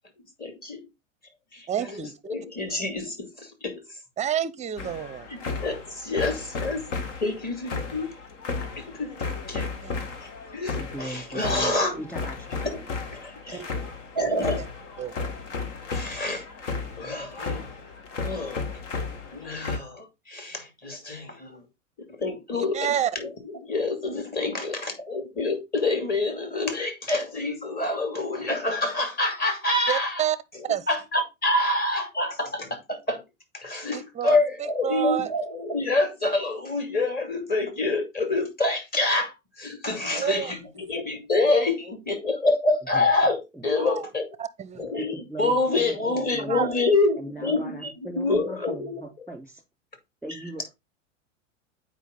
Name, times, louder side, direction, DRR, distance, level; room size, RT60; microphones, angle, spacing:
voice 1, 0.4-0.9 1.5-2.0 2.3-3.8 5.3-6.9 7.2-8.2 8.8-9.7 10.2-12.0 12.6-12.8 13.1-13.6 14.1-14.6 15.9-16.5 17.0-17.7 18.2-18.6 19.3-21.6 22.0-30.2 30.5-33.2 33.5-44.3 44.8-49.3, left 2 dB, 25° left, 2.5 m, -27 dB
voice 2, 1.7-2.1 4.2-5.3 6.6-6.7 9.8-10.0 11.6-12.0 13.5-13.7 15.0-15.3 22.5-23.1 29.9-30.4 30.7-30.8 33.9-34.4 34.8-35.3 40.2-40.5 43.8-44.1 44.4-44.8 46.5-46.7, right 10 dB, 20° right, 0.6 m, -29 dB
sound 1, 4.8-19.8, left 4 dB, 65° left, 1.8 m, -34 dB
voice 3, 10.7-12.9 42.9-43.0 43.5-43.6 45.0-46.7 47.2-49.6 50.2-50.7, right 1 dB, 5° left, 3.1 m, -39 dB
8.2 x 5.0 x 3.8 m
hypercardioid pair, 100°, 39 cm